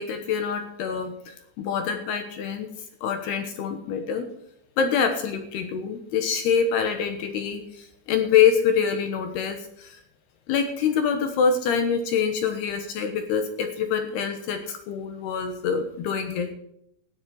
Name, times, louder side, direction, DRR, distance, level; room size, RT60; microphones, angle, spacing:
voice 1, 0.0-2.7 3.0-4.3 4.8-10.0 10.5-16.5, left 7 dB, 70° left, 7 dB, 2.6 m, -25 dB
13.5 x 9.6 x 6.3 m, 0.75 s
omnidirectional pair, 5.9 m